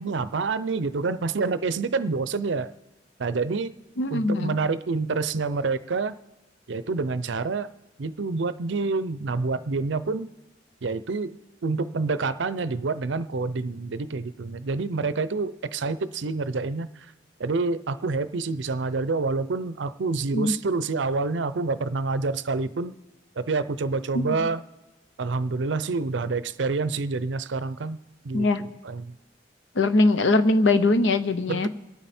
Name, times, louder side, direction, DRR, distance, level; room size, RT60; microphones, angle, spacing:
voice 1, 0.0-2.7 3.2-3.7 4.1-6.2 6.7-7.7 8.0-10.3 10.8-17.1 17.4-22.9 23.4-24.7 25.2-28.0 28.2-29.1 31.5-31.7, right 4 dB, 80° right, 14 dB, 0.6 m, -27 dB
voice 2, 4.0-4.6 20.3-20.5 24.1-24.4 28.3-28.6 29.7-31.7, left 2 dB, 90° left, 12 dB, 0.8 m, -21 dB
27.0 x 9.0 x 4.3 m, 1.1 s
head